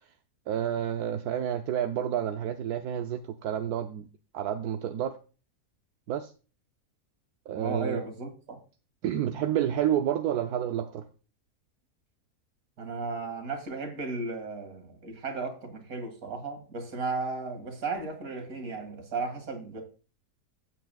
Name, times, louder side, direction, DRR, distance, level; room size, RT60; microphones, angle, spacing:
voice 1, 0.5-4.1 4.3-5.2 6.1-6.3 7.5-8.0 9.0-11.1, right 10 dB, 85° right, 1.2 m, -29 dB
voice 2, 7.5-8.6 12.8-19.8, right 3 dB, 65° right, 2.5 m, -35 dB
12.5 x 8.3 x 2.3 m
omnidirectional pair, 1.6 m